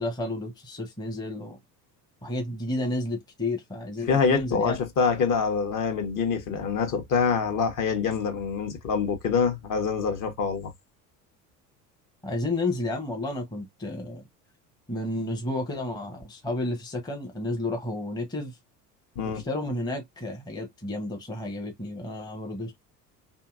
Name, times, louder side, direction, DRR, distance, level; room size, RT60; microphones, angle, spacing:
voice 1, 0.0-1.6 2.2-4.8 12.2-14.2 14.9-18.5 19.2-22.8, left 2 dB, 10° left, 0.8 m, -31 dB
voice 2, 4.1-10.7 19.2-19.4, left 5 dB, 40° left, 1.0 m, -25 dB
2.8 x 2.7 x 2.3 m
hypercardioid pair, 70°, 49 cm